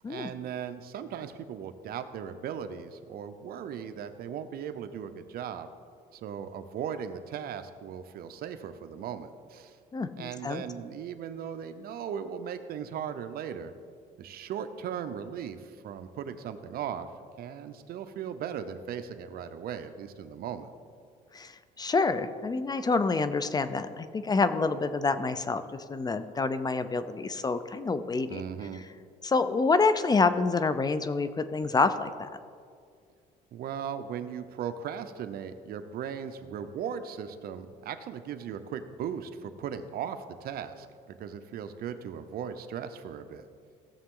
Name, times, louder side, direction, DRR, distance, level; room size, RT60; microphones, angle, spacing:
voice 1, 0.0-5.7 6.1-9.8 10.2-13.7 14.2-17.1 17.4-20.7 28.3-28.8 33.5-43.5, right 8 dB, 65° right, 10 dB, 0.7 m, -38 dB
voice 2, 9.9-10.6 21.3-28.4 29.2-32.3, left 4 dB, 25° left, 12 dB, 0.5 m, -27 dB
16.5 x 6.9 x 3.8 m, 2.2 s
cardioid pair, 110°, 17 cm